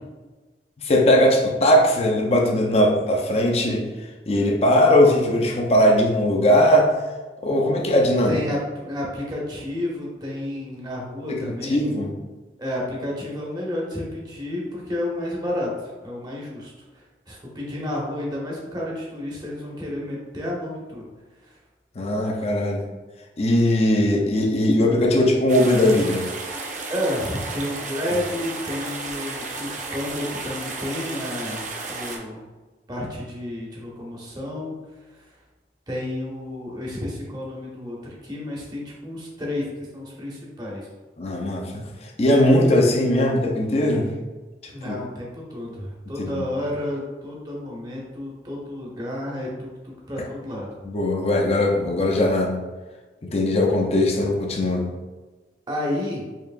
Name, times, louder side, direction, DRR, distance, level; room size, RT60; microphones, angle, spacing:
voice 1, 0.8-7.0 7.4-8.4 11.3-12.1 22.0-22.9 23.4-26.3 41.2-44.1 44.6-44.9 46.2-46.4 50.8-52.6 53.2-54.9, left 1 dB, 35° left, 1 dB, 0.5 m, -20 dB
voice 2, 8.3-12.0 12.6-21.0 21.4-21.6 26.9-32.4 32.9-34.7 35.1-35.3 35.9-40.9 44.7-50.7 55.7-56.2, left 1 dB, 25° right, -3 dB, 0.8 m, -31 dB
sound 1, 25.5-32.2, right 3 dB, 45° right, 0.5 m, -33 dB
4.5 x 3.0 x 2.5 m, 1.2 s
head